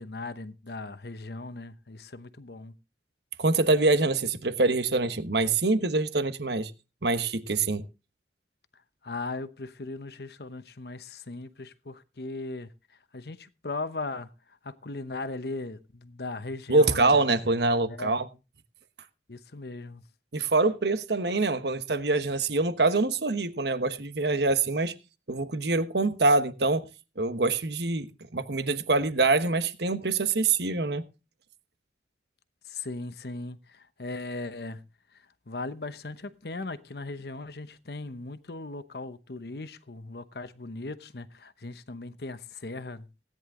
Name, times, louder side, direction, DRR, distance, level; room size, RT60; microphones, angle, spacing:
voice 1, 0.0-2.7 8.7-17.2 17.9-18.2 19.3-20.0 32.6-34.8 35.1-43.1, left 3 dB, 65° left, 0.9 m, -38 dB
voice 2, 3.4-6.7 7.0-7.9 16.7-18.3 20.3-24.9 25.3-26.8 27.2-31.0, right 3 dB, 70° right, 1.2 m, -25 dB
17.0 x 10.0 x 3.7 m
head